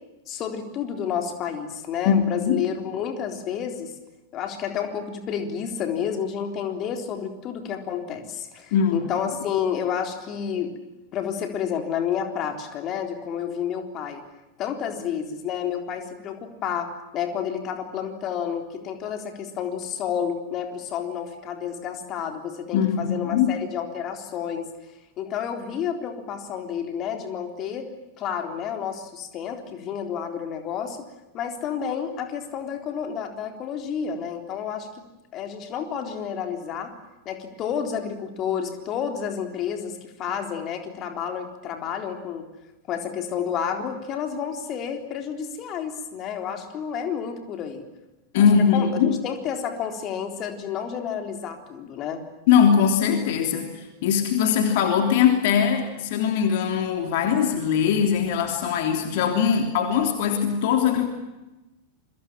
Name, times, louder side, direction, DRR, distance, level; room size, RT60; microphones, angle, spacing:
voice 1, 0.3-3.9 4.3-10.7 11.1-14.2 14.6-24.7 25.2-27.9 28.2-31.0 31.3-34.9 35.3-36.9 37.3-42.5 42.9-47.8 48.3-48.5 48.7-52.2, left 8 dB, 35° left, 5 dB, 3.8 m, -30 dB
voice 2, 2.0-2.6 8.7-9.0 22.7-23.5 48.3-49.2 52.5-61.1, left 7 dB, 50° left, 5 dB, 3.3 m, -21 dB
29.0 x 24.0 x 7.5 m, 1.0 s
figure-of-eight pair, 90°, 0 cm